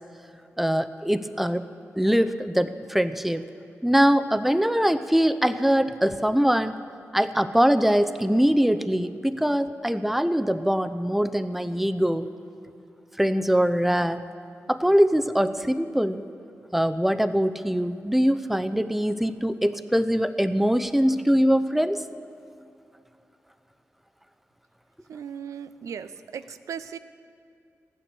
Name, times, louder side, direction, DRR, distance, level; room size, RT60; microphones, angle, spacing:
voice 1, 0.6-1.6 2.0-3.5 3.8-6.8 7.1-12.3 13.2-14.2 14.7-16.2 16.7-22.0, equal, 5° right, 11 dB, 0.6 m, -22 dB
voice 2, 25.1-27.0, right 7 dB, 90° right, 12 dB, 0.5 m, -37 dB
14.5 x 10.0 x 6.8 m, 2.6 s
cardioid pair, 60°, 5 cm